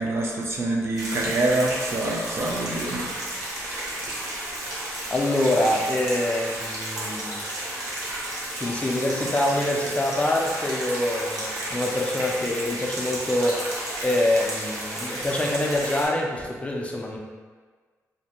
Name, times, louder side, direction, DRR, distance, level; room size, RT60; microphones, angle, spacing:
voice 1, 0.0-3.1, right 2 dB, 45° right, -2 dB, 0.4 m, -26 dB
sound 1, 1.0-16.1, right 1 dB, 75° right, 0.7 m, -32 dB
voice 2, 5.1-7.4 8.6-13.6 14.0-17.2, left 1 dB, 20° left, -1 dB, 0.3 m, -25 dB
2.4 x 2.1 x 2.7 m, 1.5 s
cardioid pair, 105°, 6 cm